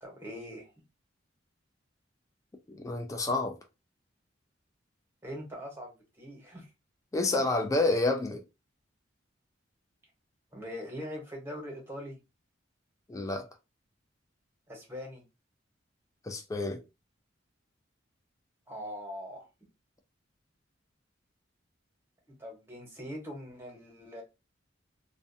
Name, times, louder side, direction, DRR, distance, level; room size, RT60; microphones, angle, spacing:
voice 1, 0.0-0.7 5.2-6.7 10.5-12.2 14.7-15.2 18.7-19.5 22.4-24.2, equal, 15° right, 0.9 m, -42 dB
voice 2, 2.7-3.6 7.1-8.4 13.1-13.5 16.2-16.8, left 2 dB, 15° left, 0.4 m, -29 dB
2.5 x 2.1 x 2.6 m
head